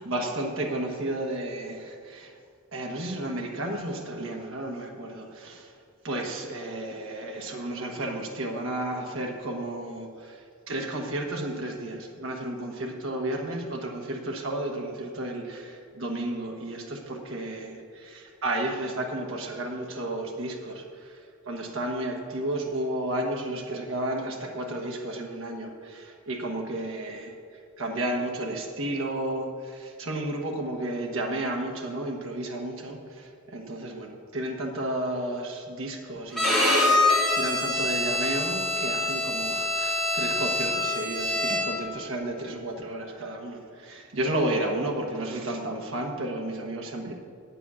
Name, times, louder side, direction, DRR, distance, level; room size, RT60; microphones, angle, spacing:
voice 1, 0.0-2.3 2.7-5.7 6.0-27.3 27.8-47.1, right 1 dB, 70° right, 1 dB, 1.2 m, -32 dB
Bowed string instrument, 36.3-41.9, left 2 dB, ahead, 2.1 m, -25 dB
9.9 x 8.4 x 6.2 m, 2.2 s
head